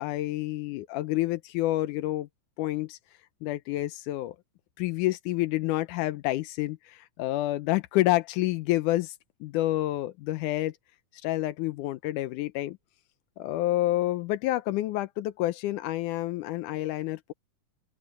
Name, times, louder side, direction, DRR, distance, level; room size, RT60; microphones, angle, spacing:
voice 1, 0.0-2.3 2.6-3.0 3.4-4.4 4.8-9.2 9.4-10.7 11.2-12.8 13.4-17.3, left 16 dB, 85° left, 2.2 m, -28 dB
open air
omnidirectional pair, 3.6 m